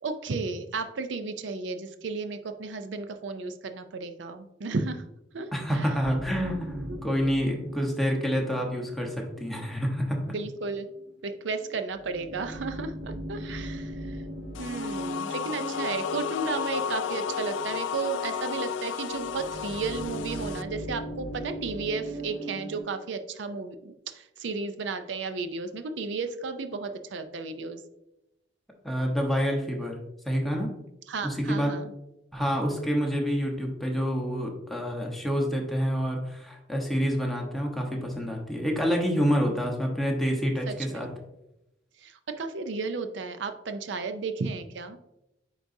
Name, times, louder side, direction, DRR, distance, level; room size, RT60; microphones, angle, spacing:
voice 1, 0.0-5.0 5.3-5.5 5.7-5.9 6.9-7.0 10.3-10.9 11.2-14.2 14.6-27.8 31.1-31.9 40.7-41.0 42.0-45.0, right 4 dB, 80° right, 9 dB, 0.5 m, -33 dB
voice 2, 5.5-10.2 28.8-30.0 30.2-30.7 31.2-31.8 32.3-41.1, equal, ahead, 0 dB, 1.0 m, -28 dB
sound 1, 6.0-11.1 11.5-11.7 11.9-22.8, right 1 dB, 45° right, 2.0 m, -40 dB
sound 2, 14.5-20.6, left 7 dB, 85° left, 0.3 m, -33 dB
9.2 x 3.9 x 2.7 m, 0.90 s
head